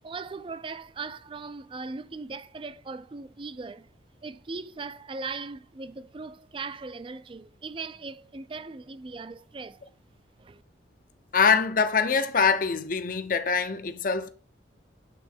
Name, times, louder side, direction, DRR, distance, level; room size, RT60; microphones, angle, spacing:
voice 1, 0.0-3.9 4.2-9.8 10.4-10.6, right 4 dB, 25° right, 0.4 m, -39 dB
voice 2, 11.3-14.3, left 5 dB, 45° left, 0.6 m, -24 dB
8.4 x 3.6 x 3.5 m
head